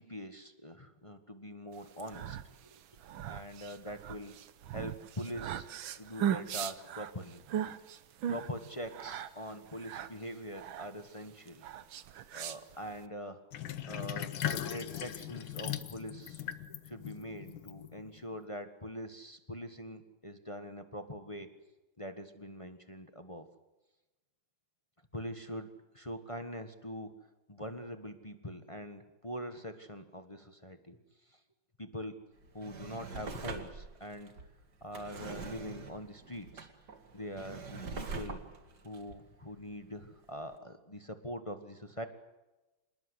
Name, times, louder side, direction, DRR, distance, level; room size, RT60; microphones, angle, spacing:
voice 1, 0.0-2.4 2.6-2.8 3.2-4.4 4.7-5.7 6.0-7.4 8.3-11.6 12.3-13.4 13.8-16.4 16.8-21.5 22.0-23.5 25.1-27.2 27.5-31.0 31.8-32.2 32.5-34.3 34.8-36.7 37.1-38.4 38.8-42.1, equal, 20° left, 8 dB, 1.3 m, -43 dB
sound 1, 1.9-13.1, right 10 dB, 85° right, 1.8 m, -39 dB
Sink (filling or washing), 13.5-18.3, left 10 dB, 90° left, 1.9 m, -39 dB
Drawer open or close, 32.4-40.1 40.5-40.6, right 4 dB, 60° right, 2.6 m, -44 dB
27.0 x 20.0 x 8.1 m, 1.1 s
omnidirectional pair, 2.1 m